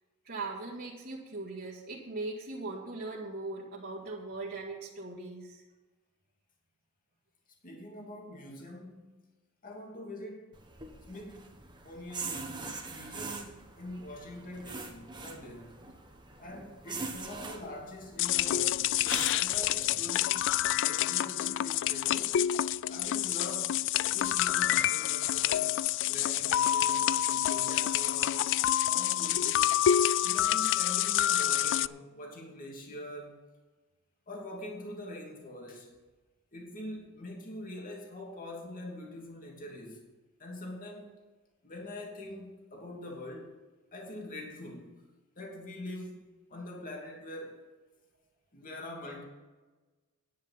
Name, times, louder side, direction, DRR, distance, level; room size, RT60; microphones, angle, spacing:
voice 1, 0.2-5.6 8.6-8.8, right 3 dB, 50° right, -6 dB, 2.4 m, -40 dB
voice 2, 7.6-9.2 9.6-10.5 11.1-11.6 11.8-12.5 12.9-15.8 16.4-18.9 19.3-20.5 20.8-22.4 22.9-23.9 24.1-25.8 26.1-28.5 28.9-29.7 30.2-33.4 34.3-35.9 36.5-40.0 40.4-41.2 41.6-43.6 43.9-45.0 45.4-47.6 48.5-49.2, left 1 dB, 40° left, -1 dB, 2.7 m, -44 dB
sound 1, 10.5-19.7, right 3 dB, 20° right, 1.6 m, -43 dB
sound 2, 18.2-31.9, left 12 dB, 60° left, 0.3 m, -28 dB
10.5 x 10.0 x 5.9 m, 1.2 s
head